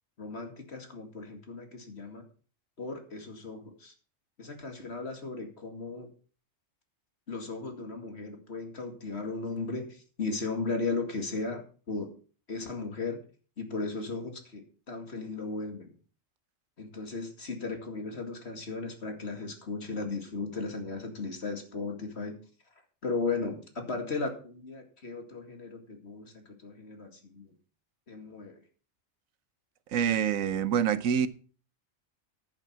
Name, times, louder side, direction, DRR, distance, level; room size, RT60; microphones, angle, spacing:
voice 1, 0.2-2.2 2.8-3.9 4.4-6.1 7.3-12.1 12.5-13.2 13.6-15.9 16.8-22.4 23.0-27.5 28.1-28.6, left 3 dB, 55° left, 2.5 m, -36 dB
voice 2, 29.9-31.3, right 8 dB, 90° right, 1.2 m, -26 dB
10.5 x 9.1 x 5.7 m
omnidirectional pair, 1.4 m